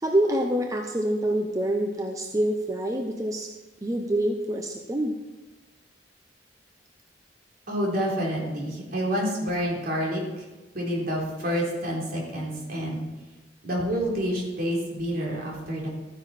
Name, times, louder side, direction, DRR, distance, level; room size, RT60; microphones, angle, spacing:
voice 1, 0.0-3.5 3.8-5.1, right 1 dB, 20° right, 3 dB, 0.8 m, -26 dB
voice 2, 7.7-10.5 10.7-13.0 13.6-15.9, equal, 55° right, -2 dB, 3.8 m, -28 dB
14.0 x 9.9 x 4.4 m, 1.2 s
head